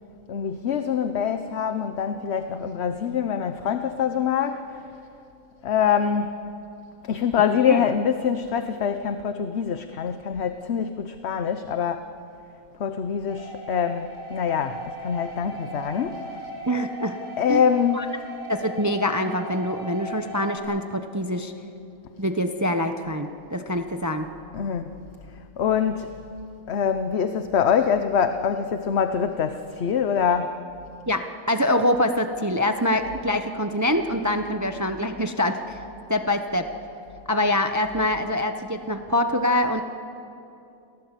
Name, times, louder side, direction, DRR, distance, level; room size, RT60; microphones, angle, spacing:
voice 1, 0.3-4.8 5.6-6.4 7.1-12.1 12.8-16.4 17.4-18.1 24.5-24.8 25.6-26.2 26.7-30.6, left 7 dB, 55° left, 9 dB, 1.0 m, -24 dB
sound 1, 13.3-20.6, right 1 dB, 40° right, 4.9 m, -38 dB
voice 2, 16.7-17.2 17.5-17.7 17.9-18.1 18.5-21.5 22.2-24.3 31.1-35.8 36.1-36.7 37.3-39.8, left 1 dB, 15° right, 7 dB, 0.7 m, -25 dB
28.5 x 17.5 x 8.2 m, 2.7 s
omnidirectional pair, 1.5 m